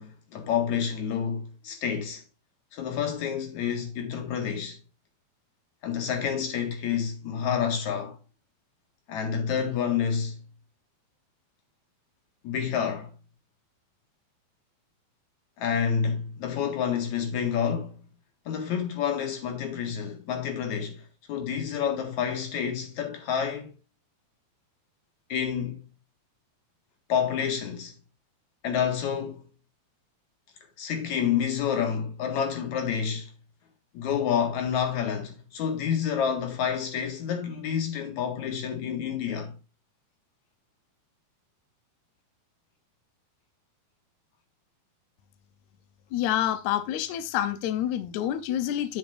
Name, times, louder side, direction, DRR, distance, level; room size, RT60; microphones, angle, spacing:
voice 1, 0.0-2.2 2.7-4.8 5.8-8.2 9.1-10.4 12.4-13.1 15.6-18.0 18.5-23.7 25.3-25.8 27.1-27.9 28.6-29.5 30.8-33.3 33.9-39.6, left 7 dB, 55° left, 2.9 m, -29 dB
voice 2, 46.1-49.0, left 11 dB, 85° left, 1.6 m, -28 dB
10.5 x 7.2 x 2.6 m
omnidirectional pair, 4.3 m